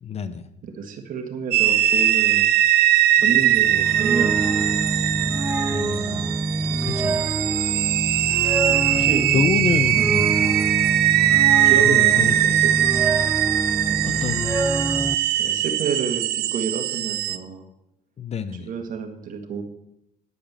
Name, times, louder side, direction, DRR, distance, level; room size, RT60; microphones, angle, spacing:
voice 1, 0.0-0.4 5.7-6.4 6.8-7.2 8.8-9.1 9.3-10.4 11.8-12.6 14.0-14.6 18.2-18.7, left 7 dB, 40° left, 12 dB, 0.7 m, -28 dB
voice 2, 0.6-2.5 3.2-4.8 6.7-6.9 8.7-9.4 9.9-10.1 11.4-13.0 13.9-14.3 15.4-17.7 18.6-19.6, right 6 dB, 55° right, 5 dB, 1.6 m, -30 dB
sound 1, 1.5-17.4, right 12 dB, 70° right, 0.6 m, -21 dB
sound 2, 3.4-15.2, right 2 dB, 15° right, 0.5 m, -26 dB
9.6 x 5.1 x 7.3 m, 0.81 s
cardioid pair, 110°, 17 cm